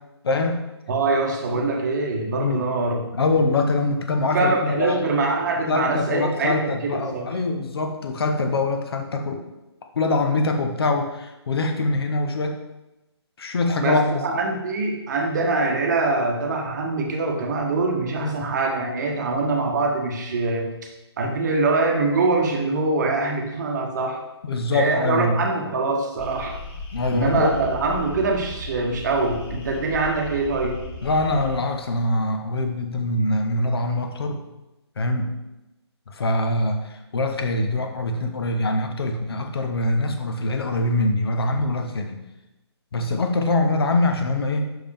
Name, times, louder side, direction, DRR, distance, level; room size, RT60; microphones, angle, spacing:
voice 1, 0.2-0.6 1.5-1.6 2.3-2.6 3.1-5.0 5.7-9.4 9.9-12.6 13.4-14.2 18.2-18.5 24.4-25.4 26.9-27.5 31.0-34.4 35.0-35.3 36.1-42.2 42.9-44.7, left 2 dB, 60° left, 4 dB, 1.0 m, -23 dB
voice 2, 0.9-3.0 4.3-7.3 13.8-20.9 21.2-24.2 24.7-26.6 27.1-30.8, right 3 dB, 40° right, 2 dB, 0.9 m, -24 dB
sound 1, 26.2-31.6, left 2 dB, 20° left, 1.9 m, -36 dB
6.0 x 4.9 x 3.5 m, 0.97 s
figure-of-eight pair, 145°, 14 cm